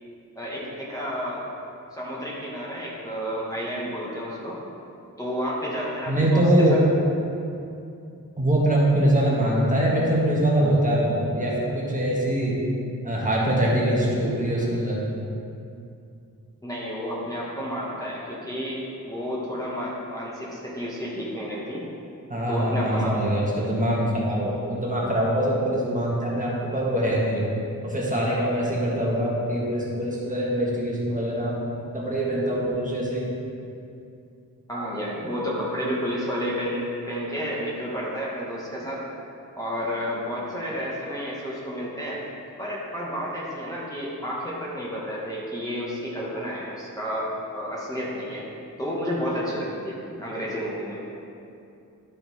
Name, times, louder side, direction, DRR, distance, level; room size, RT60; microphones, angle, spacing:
voice 1, 0.3-1.5 1.9-4.6 5.2-6.8 16.6-21.8 22.5-23.3 34.7-39.0 39.6-42.2 42.6-48.4 48.8-51.0, equal, 10° left, -6 dB, 1.2 m, -31 dB
voice 2, 6.1-6.8 8.4-12.6 13.0-15.0 22.3-27.5 27.8-31.5 31.9-33.3, right 1 dB, 25° right, -5 dB, 1.5 m, -23 dB
12.0 x 4.2 x 4.1 m, 2.6 s
wide cardioid pair, 130°, 34 cm